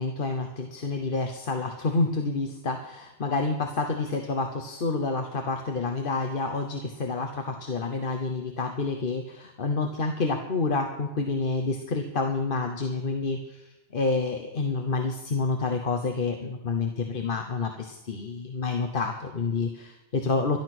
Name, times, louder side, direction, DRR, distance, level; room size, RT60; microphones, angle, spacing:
voice 1, 0.0-20.6, left 3 dB, 50° left, 4 dB, 1.2 m, -28 dB
12.5 x 12.0 x 6.0 m, 0.97 s
omnidirectional pair, 1.2 m